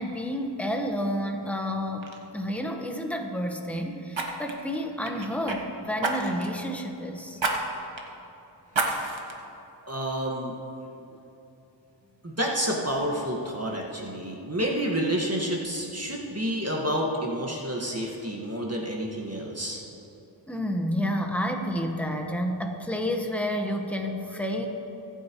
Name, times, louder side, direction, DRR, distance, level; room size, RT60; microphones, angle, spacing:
voice 1, 0.0-7.4 20.5-24.7, equal, 5° left, 2 dB, 1.3 m, -30 dB
Fire, 1.4-1.6 2.0-2.2 4.1-5.6 6.0-6.6 7.4-7.6 8.0-8.1 8.7-9.3 9.9-10.0, right 3 dB, 70° right, 1.4 m, -29 dB
voice 2, 9.9-10.5 12.2-19.8, equal, 30° right, -2 dB, 1.8 m, -29 dB
23.5 x 9.0 x 3.1 m, 3.0 s
wide cardioid pair, 40°, 47 cm